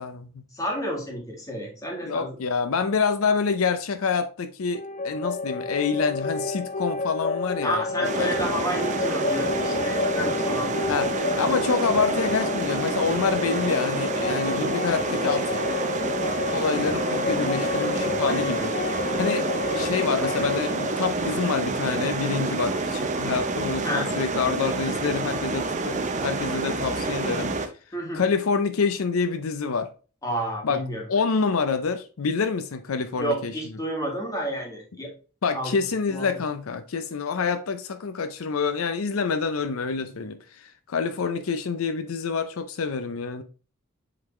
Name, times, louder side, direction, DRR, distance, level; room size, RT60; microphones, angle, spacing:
voice 1, 0.0-0.4 2.0-7.8 8.2-8.3 10.9-15.5 16.5-18.8 19.0-19.5 19.7-27.5 28.1-29.9 30.6-30.8 31.1-33.5 35.4-43.4, left 5 dB, 80° left, 0.6 m, -27 dB
voice 2, 0.5-2.4 7.6-10.8 23.8-24.1 27.9-28.2 30.2-31.0 33.2-35.1 35.5-35.7 36.1-36.3, equal, 15° left, 1.9 m, -30 dB
sound 1, 4.7-22.5, left 3 dB, 35° left, 0.5 m, -30 dB
sound 2, 8.0-27.7, right 3 dB, 35° right, 0.7 m, -28 dB
7.7 x 3.9 x 3.1 m
head